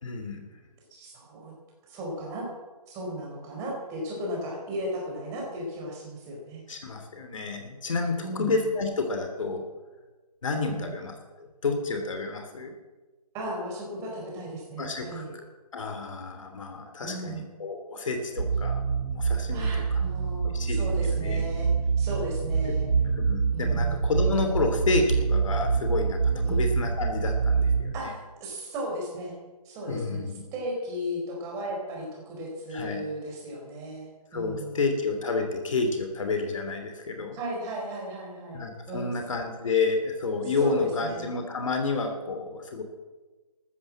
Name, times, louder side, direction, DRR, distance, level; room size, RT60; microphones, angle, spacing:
voice 1, 0.0-0.4 6.7-9.6 10.4-12.7 14.8-15.3 15.7-18.8 19.1-20.0 20.5-21.4 23.1-28.1 29.9-30.4 32.7-33.0 34.3-37.4 38.5-42.8, left 3 dB, 55° left, 5 dB, 3.1 m, -30 dB
voice 2, 0.9-1.5 1.9-2.5 2.9-6.6 8.2-8.6 10.7-10.9 13.3-15.3 17.0-17.5 19.5-21.7 22.0-22.9 23.5-24.0 26.4-26.7 27.9-29.3 29.6-30.2 30.5-34.9 37.3-39.1 40.6-41.3, equal, 15° right, -1 dB, 4.6 m, -36 dB
sound 1, 18.4-27.9, right 5 dB, 90° right, 1.1 m, -26 dB
14.0 x 13.0 x 7.5 m, 1.2 s
figure-of-eight pair, 160°, 20 cm